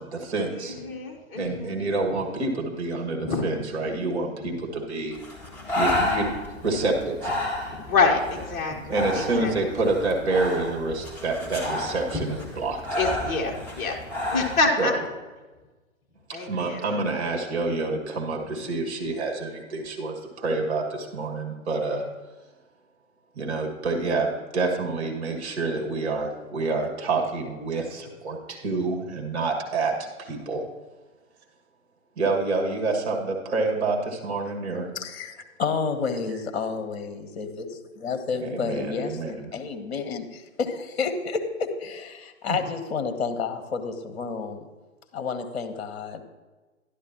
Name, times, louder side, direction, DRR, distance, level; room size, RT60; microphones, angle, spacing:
voice 1, 0.0-0.8 1.3-5.2 5.7-6.3 6.6-7.3 8.9-12.8 14.8-15.1 16.3-22.1 23.4-24.3 24.5-29.9 30.2-30.6 32.2-34.9 38.4-39.5 42.5-42.6, right 3 dB, 55° right, 1 dB, 2.2 m, -27 dB
voice 2, 0.8-1.7 3.2-3.5 7.9-9.5 13.0-14.0 14.3-14.9 16.3-16.8, left 3 dB, 20° left, 0 dB, 1.3 m, -26 dB
Breathing, 5.1-14.6, left 1 dB, 5° left, 1.7 m, -31 dB
voice 3, 34.9-44.7 45.1-46.2, left 5 dB, 50° left, 8 dB, 1.3 m, -30 dB
11.5 x 11.5 x 3.0 m, 1.3 s
figure-of-eight pair, 130°, 40 cm